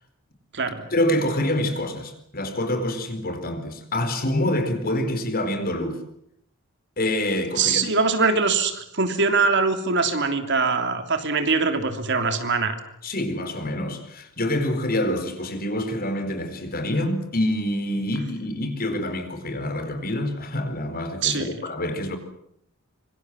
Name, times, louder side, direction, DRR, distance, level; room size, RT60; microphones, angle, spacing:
voice 1, 0.9-6.0 7.0-7.9 13.0-22.2, left 1 dB, 45° left, 4.4 m, -26 dB
voice 2, 7.6-12.8 21.2-21.6, right 4 dB, 60° right, 3.1 m, -22 dB
25.5 x 24.5 x 7.6 m
head